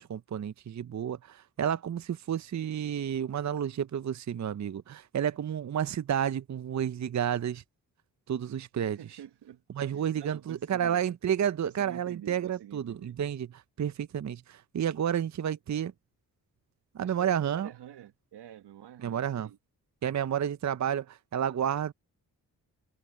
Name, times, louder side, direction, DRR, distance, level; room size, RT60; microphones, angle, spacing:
voice 1, 0.0-7.6 8.3-9.2 9.7-15.9 16.9-17.7 19.0-19.5 20.0-21.9, right 9 dB, 45° right, 0.7 m, -31 dB
voice 2, 8.7-9.6 9.9-11.0 11.6-13.1 17.0-19.6, right 10 dB, 70° right, 1.2 m, -48 dB
supercardioid pair, 45°, 42 cm